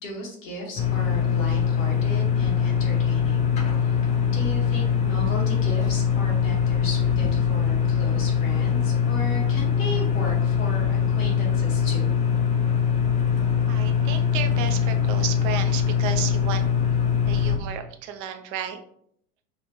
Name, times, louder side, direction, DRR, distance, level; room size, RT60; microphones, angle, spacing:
voice 1, 0.0-4.0 4.3-12.1, left 1 dB, 55° left, -1 dB, 1.6 m, -36 dB
sound 1, 0.8-17.6, left 7 dB, 15° left, 0.4 m, -22 dB
voice 2, 13.7-16.7 17.3-18.8, right 8 dB, 35° right, 7 dB, 0.5 m, -33 dB
4.9 x 2.5 x 3.0 m, 0.67 s
figure-of-eight pair, 85°, 45 cm